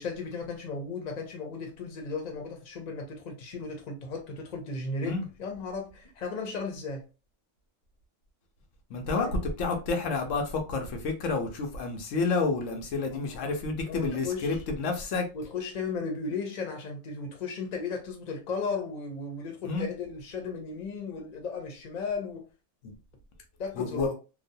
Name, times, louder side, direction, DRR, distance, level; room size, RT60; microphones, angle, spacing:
voice 1, 0.0-7.0 9.2-9.3 13.1-13.6 13.8-14.9 15.3-22.4 23.6-24.1, left 4 dB, 40° left, 0.7 m, -35 dB
voice 2, 8.9-15.3 19.6-19.9 22.8-22.9 23.8-24.1, left 3 dB, 90° left, 1.1 m, -30 dB
2.9 x 2.1 x 2.6 m
omnidirectional pair, 1.3 m